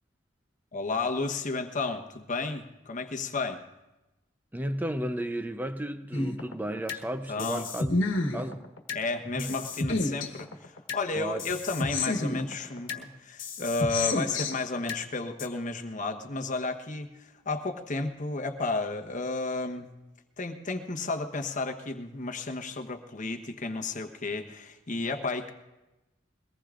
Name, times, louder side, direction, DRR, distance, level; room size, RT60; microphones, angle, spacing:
voice 1, 0.7-3.6 7.3-7.7 8.9-19.9 20.4-25.5, left 3 dB, 40° left, 1.1 m, -32 dB
voice 2, 4.5-7.9 8.3-8.6 9.4-9.5 11.1-11.4, right 1 dB, 10° right, 0.6 m, -33 dB
sound 1, 6.1-7.0 7.4-9.0 9.4-11.0 11.4-13.0 13.4-15.0 15.4-15.5, left 2 dB, 80° left, 1.3 m, -30 dB
22.5 x 18.5 x 2.5 m
head